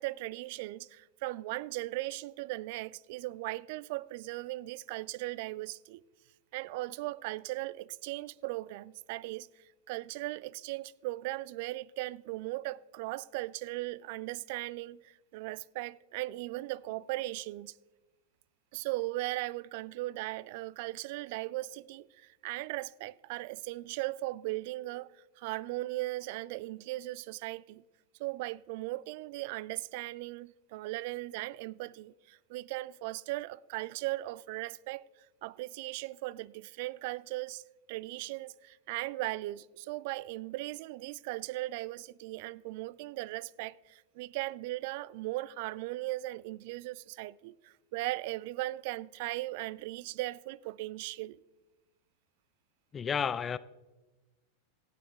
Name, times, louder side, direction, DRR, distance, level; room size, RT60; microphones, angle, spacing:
voice 1, 0.0-6.0 6.5-17.8 18.7-27.8 28.2-35.0 35.4-51.4, right 18 dB, 50° right, 0.4 m, -38 dB
voice 2, 52.9-53.6, left 7 dB, 20° left, 0.4 m, -31 dB
26.5 x 9.1 x 3.4 m
figure-of-eight pair, 90°, 0 cm